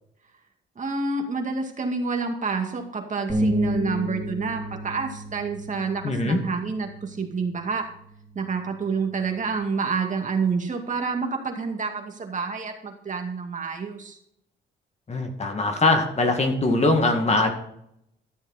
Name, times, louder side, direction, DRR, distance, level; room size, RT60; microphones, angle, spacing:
voice 1, 0.8-7.9 8.3-14.2, right 4 dB, 40° right, 3 dB, 2.2 m, -28 dB
sound 1, 3.3-9.5, equal, 5° right, 2.9 m, -32 dB
voice 2, 6.0-6.4 15.1-17.5, left 2 dB, 35° left, 4 dB, 2.1 m, -22 dB
13.5 x 7.1 x 4.2 m, 0.74 s
cardioid pair, 90°, 20 cm